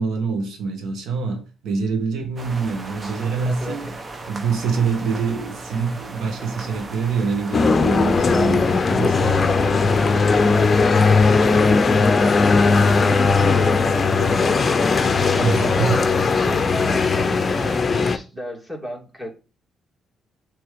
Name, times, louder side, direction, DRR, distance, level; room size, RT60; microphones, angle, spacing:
voice 1, 0.0-3.9 4.3-9.9 15.2-16.0, right 5 dB, 80° right, 1.6 m, -25 dB
sound 1, 2.4-17.8, right 2 dB, 35° right, 0.9 m, -36 dB
voice 2, 3.4-3.9 8.2-8.5 9.2-19.3, equal, 10° right, 2.7 m, -34 dB
sound 2, 7.5-18.2, left 4 dB, 35° left, 0.6 m, -18 dB
6.7 x 3.4 x 5.1 m
cardioid pair, 90°, 0 cm